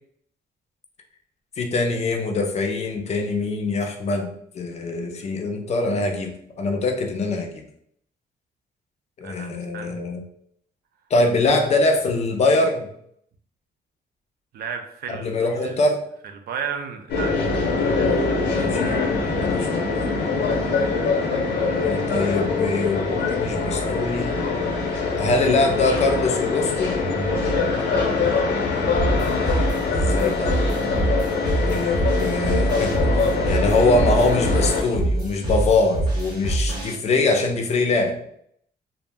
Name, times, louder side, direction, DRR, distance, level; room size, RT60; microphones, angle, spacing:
voice 1, 1.6-6.3 6.6-7.6 9.2-10.2 11.1-12.9 15.1-16.0 18.5-18.9 19.3-20.1 21.8-24.4 25.2-26.9 30.1-30.6 31.7-38.2, left 2 dB, 40° left, 3 dB, 0.4 m, -23 dB
voice 2, 9.2-10.0 14.5-15.8 16.5-17.5 17.8-18.7 27.9-28.2 30.9-31.1, right 6 dB, 60° right, 5 dB, 0.4 m, -34 dB
sound 1, 17.1-34.8, left 4 dB, 75° left, 0.8 m, -23 dB
sound 2, 28.9-36.9, right 1 dB, 25° right, 0.8 m, -25 dB
2.5 x 2.0 x 3.3 m, 0.70 s
cardioid pair, 155°, 18 cm